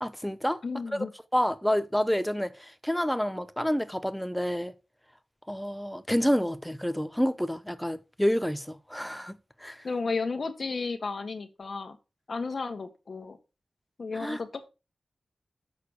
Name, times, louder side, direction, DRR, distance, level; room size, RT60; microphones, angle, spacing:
voice 1, 0.0-0.6 0.9-1.0 1.3-4.7 5.5-9.8 14.1-14.4, equal, 5° left, 0.7 m, -29 dB
voice 2, 0.6-1.1 9.8-12.0 12.3-13.4 14.0-14.7, left 4 dB, 50° left, 1.5 m, -33 dB
6.9 x 6.5 x 6.5 m
wide cardioid pair, 135°, 0 cm